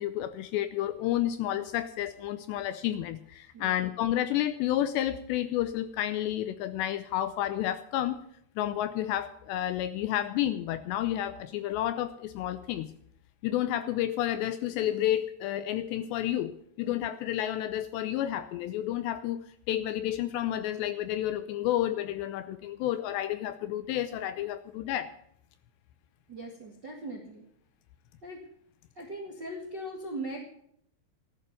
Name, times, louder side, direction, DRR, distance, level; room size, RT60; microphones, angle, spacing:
voice 1, 0.0-8.2 8.6-12.9 13.4-25.1, left 12 dB, 80° left, 12 dB, 2.6 m, -30 dB
voice 2, 26.3-27.4 28.2-28.4 28.9-30.4, right 1 dB, 45° right, 1 dB, 1.3 m, -39 dB
14.0 x 11.5 x 6.9 m, 0.71 s
omnidirectional pair, 5.5 m